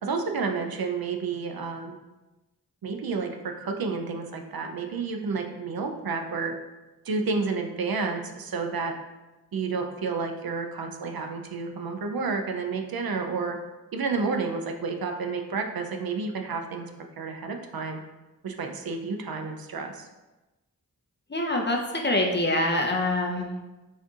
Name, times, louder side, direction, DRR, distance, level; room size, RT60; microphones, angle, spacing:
voice 1, 0.0-1.9 2.8-6.5 7.1-8.9 9.5-13.6 13.9-16.9 17.2-18.0 18.4-20.1, right 4 dB, 70° right, 4 dB, 0.5 m, -30 dB
voice 2, 21.3-23.5, left 1 dB, 30° left, 1 dB, 0.6 m, -25 dB
6.2 x 2.7 x 2.4 m, 1.1 s
cardioid pair, 45°, 37 cm